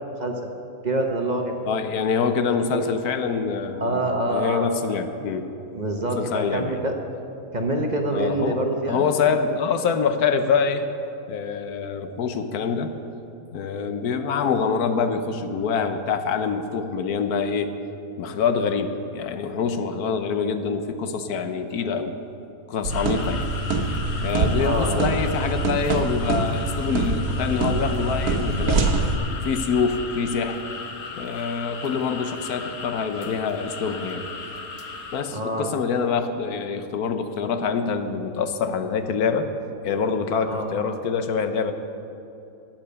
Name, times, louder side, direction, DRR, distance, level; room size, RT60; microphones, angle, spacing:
voice 1, 0.2-0.5 0.8-1.6 2.7-2.8 3.8-4.7 5.7-6.9 7.5-9.0 24.6-25.1 35.3-35.7 40.4-40.9, right 1 dB, 35° right, 3 dB, 0.9 m, -26 dB
voice 2, 1.7-4.0 4.3-5.5 6.2-6.8 8.1-10.8 11.3-12.9 13.5-17.7 18.2-22.1 22.7-23.5 24.2-28.9 29.4-30.6 31.2-34.3 35.1-39.5 39.8-41.7, left 5 dB, 90° left, 9 dB, 1.3 m, -25 dB
sound 1, 22.8-29.2, right 3 dB, 80° right, 1.5 m, -24 dB
sound 2, 22.9-35.2, left 4 dB, 60° left, 1.4 m, -36 dB
13.5 x 9.0 x 6.8 m, 2.9 s
omnidirectional pair, 1.6 m